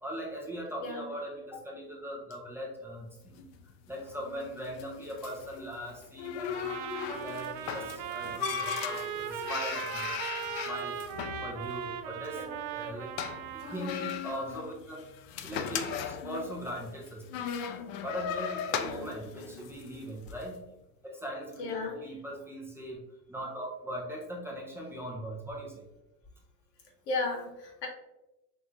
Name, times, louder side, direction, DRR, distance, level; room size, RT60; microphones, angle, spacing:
voice 1, 0.0-3.4 3.9-6.8 7.1-10.2 10.5-11.0 11.4-12.4 12.7-13.1 13.5-15.0 15.4-17.6 18.0-20.6 21.0-23.0 23.3-25.9, equal, 5° right, -2 dB, 0.3 m, -40 dB
sound 1, 3.2-20.5, left 8 dB, 50° left, 0.5 m, -38 dB
Trumpet, 6.5-13.9, right 9 dB, 60° right, 0.5 m, -38 dB
voice 2, 18.7-19.1 21.6-22.0 27.1-27.9, left 3 dB, 90° left, 1 dB, 1.2 m, -35 dB
4.4 x 3.3 x 2.5 m, 0.92 s
supercardioid pair, 110°, 47 cm